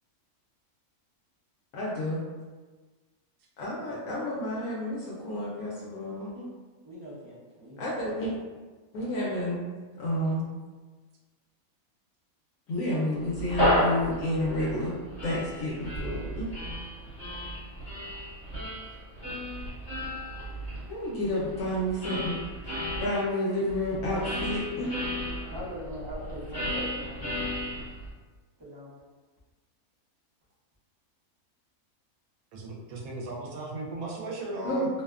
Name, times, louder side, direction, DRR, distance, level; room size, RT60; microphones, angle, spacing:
voice 1, 1.7-2.2 3.6-6.5 7.8-8.3 8.9-9.6 9.9-10.4 12.7-14.9 15.2-16.5 20.9-22.3 23.0-25.0 34.6-34.9, left 1 dB, 70° left, -6 dB, 0.9 m, -30 dB
voice 2, 6.8-7.9 9.6-9.8 25.5-27.5 28.6-29.0, equal, 35° right, -10 dB, 0.4 m, -41 dB
sound 1, 13.2-23.1 23.7-28.1, equal, 25° left, 1.3 m, -33 dB
voice 3, 32.5-34.9, right 2 dB, 75° right, -2 dB, 1.0 m, -36 dB
2.6 x 2.1 x 2.3 m, 1.3 s
omnidirectional pair, 1.5 m